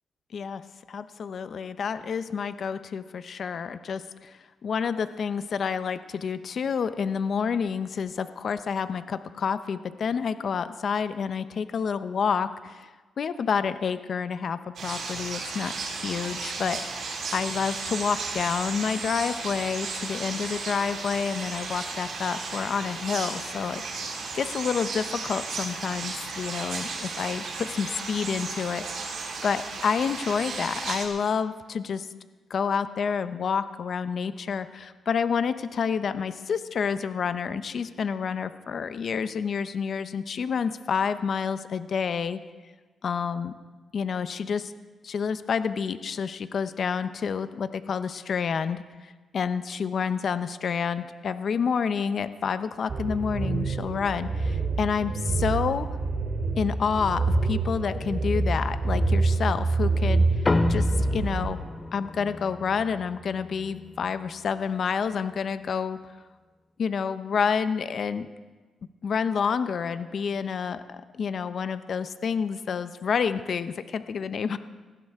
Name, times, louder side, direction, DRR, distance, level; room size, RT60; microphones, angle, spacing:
voice 1, 0.9-12.9 13.2-24.0 24.3-29.2 29.4-32.1 32.5-42.4 43.0-43.5 43.9-44.7 45.0-55.9 56.6-60.4 60.7-60.9 61.1-61.6 61.9-66.0 66.8-68.3 69.0-74.6, left 6 dB, 60° left, 12 dB, 0.7 m, -29 dB
sound 1, 14.8-31.1, right 4 dB, 70° right, 3.9 m, -34 dB
sound 2, 52.9-61.5, right 3 dB, 55° right, 2.5 m, -26 dB
sound 3, 60.4-65.2, left 2 dB, 30° left, 0.8 m, -31 dB
19.0 x 15.5 x 3.6 m, 1.3 s
cardioid pair, 85°, 0 cm